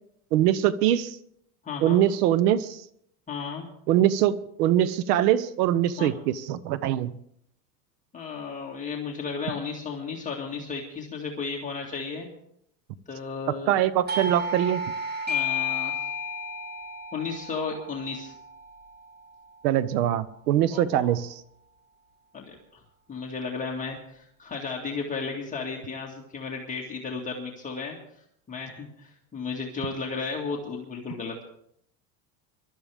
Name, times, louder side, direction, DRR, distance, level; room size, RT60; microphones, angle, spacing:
voice 1, 0.3-1.2 1.8-2.8 3.9-7.1 13.7-14.8 19.6-21.3, right 12 dB, 85° right, 17 dB, 0.9 m, -23 dB
voice 2, 1.6-2.0 3.3-3.6 6.0-6.1 8.1-12.3 13.1-13.7 15.3-15.9 17.1-18.3 20.7-21.1 22.3-22.8 23.1-28.0 28.5-31.4, left 5 dB, 15° left, -2 dB, 2.0 m, -34 dB
Doorbell, 14.1-19.4, left 3 dB, 20° right, 1.9 m, -32 dB
23.0 x 12.5 x 3.5 m, 0.70 s
supercardioid pair, 145°, 46 cm